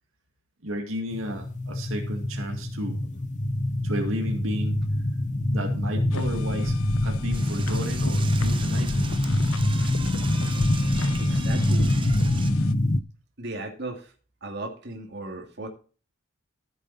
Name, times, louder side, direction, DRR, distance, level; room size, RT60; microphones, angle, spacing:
voice 1, 0.6-3.0 3.8-4.8 5.5-6.8 7.0-9.1, equal, 80° right, 3 dB, 2.1 m, -33 dB
sound 1, 1.1-13.0, left 1 dB, 35° left, 0.7 m, -25 dB
sound 2, 6.1-12.7, left 4 dB, 85° left, 0.6 m, -37 dB
Door / Toilet flush, 7.3-12.5, right 6 dB, 25° right, 0.8 m, -40 dB
voice 2, 10.8-11.9 13.4-14.1 14.4-15.7, right 2 dB, 55° right, 3 dB, 2.3 m, -36 dB
14.0 x 7.4 x 4.1 m, 0.38 s
head